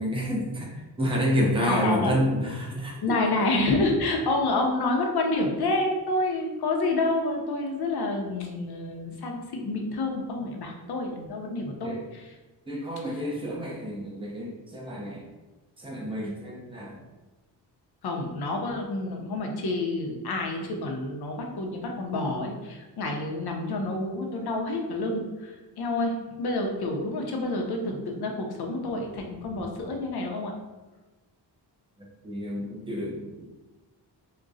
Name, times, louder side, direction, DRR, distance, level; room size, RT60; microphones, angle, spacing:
voice 1, 0.0-3.0 11.8-12.0 12.7-15.3 15.8-17.0 32.2-33.6, equal, 10° right, -2 dB, 0.7 m, -29 dB
voice 2, 1.6-2.1 3.0-12.3 18.0-30.5, left 2 dB, 60° left, 2 dB, 0.7 m, -28 dB
4.8 x 2.2 x 2.6 m, 1.2 s
wide cardioid pair, 130°, 43 cm